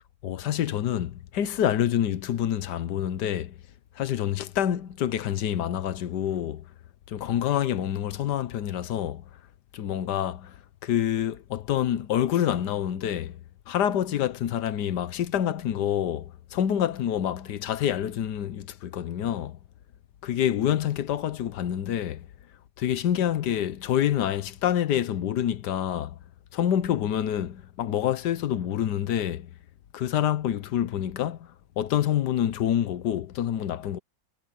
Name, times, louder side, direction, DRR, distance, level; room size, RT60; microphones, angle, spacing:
voice 1, 0.2-3.5 4.0-6.6 7.1-9.2 9.7-10.5 10.8-13.4 13.7-19.6 20.2-22.3 22.8-26.2 26.5-29.5 29.9-31.5 31.8-34.0, left 10 dB, 70° left, 1.4 m, -27 dB
omnidirectional pair, 2.0 m